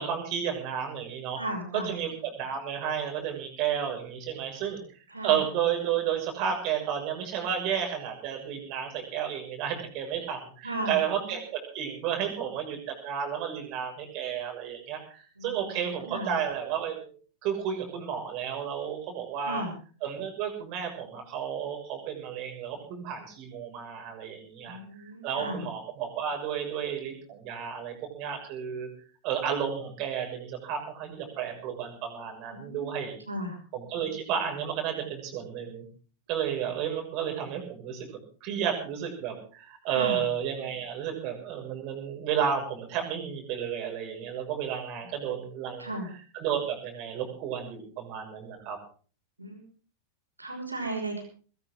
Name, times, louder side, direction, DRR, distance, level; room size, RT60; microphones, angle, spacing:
voice 1, 0.0-1.4 1.7-4.8 5.2-12.8 13.0-17.1 17.4-19.6 20.0-28.9 29.2-33.1 33.7-35.8 36.3-38.1 38.4-45.9 46.3-48.8, right 8 dB, 40° right, 4 dB, 6.3 m, -32 dB
voice 2, 1.4-1.9 5.1-5.4 10.6-11.3 15.4-16.4 19.4-19.7 24.6-25.6 32.5-32.8 33.3-33.6 39.9-40.2 45.0-45.1 45.8-46.1 49.4-49.6 50.4-51.2, right 1 dB, 85° right, 4 dB, 5.9 m, -35 dB
20.5 x 18.0 x 3.9 m, 0.41 s
figure-of-eight pair, 90°, 0 cm